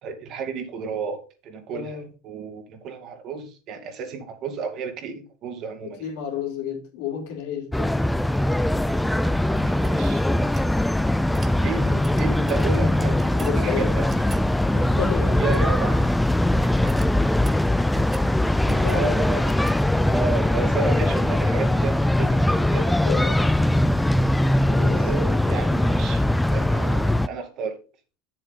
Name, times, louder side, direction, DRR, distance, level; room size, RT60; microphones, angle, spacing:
voice 1, 0.0-2.0 2.2-6.1 9.5-10.2 11.6-14.1 15.4-16.2 16.8-17.0 18.8-19.5 20.1-23.0 24.9-27.8, right 5 dB, 50° right, 4 dB, 2.5 m, -32 dB
voice 2, 1.7-2.1 5.8-7.9 13.3-14.0 14.7-15.5 18.7-19.3 23.0-23.5 24.6-25.1, left 8 dB, 75° left, 2 dB, 3.1 m, -31 dB
sound 1, 7.7-27.3, left 1 dB, 5° left, 0.5 m, -21 dB
sound 2, 9.5-10.8 11.3-11.6 12.0-12.7 13.2-13.6 14.1-14.5 15.3-15.9 16.2-16.4 16.6-18.3 18.7-19.1 19.4-19.9, right 5 dB, 25° right, 1.0 m, -42 dB
9.0 x 7.5 x 3.9 m, 0.33 s
supercardioid pair, 115°, 0 cm